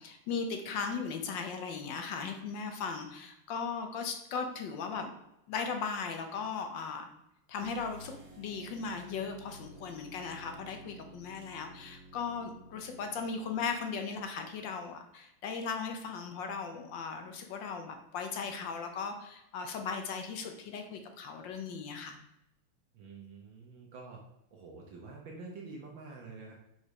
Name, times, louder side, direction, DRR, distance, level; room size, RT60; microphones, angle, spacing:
voice 1, 0.0-5.1 5.5-7.1 7.5-22.2, left 5 dB, 65° left, 5 dB, 1.3 m, -37 dB
sound 1, 7.6-13.8, right 1 dB, 50° right, 1.7 m, -53 dB
voice 2, 22.9-24.2 24.5-26.5, right 3 dB, 65° right, 0 dB, 1.6 m, -47 dB
5.2 x 4.9 x 4.8 m, 0.84 s
omnidirectional pair, 2.4 m